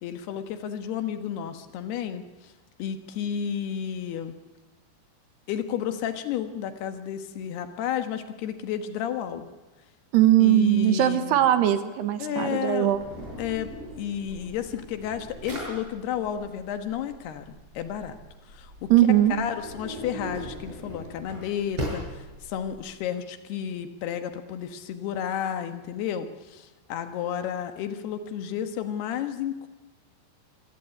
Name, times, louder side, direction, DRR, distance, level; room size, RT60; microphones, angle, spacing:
voice 1, 0.0-2.5 2.8-4.3 5.5-9.5 10.4-11.5 12.2-13.0 13.4-18.2 18.5-18.9 19.3-29.7, left 9 dB, 70° left, 9 dB, 3.2 m, -32 dB
voice 2, 10.1-13.0 18.9-19.4, right 12 dB, 70° right, 10 dB, 3.3 m, -20 dB
Drawer open or close, 12.9-22.8, right 1 dB, 30° right, 8.6 m, -40 dB
25.5 x 17.0 x 9.9 m, 1.2 s
omnidirectional pair, 5.2 m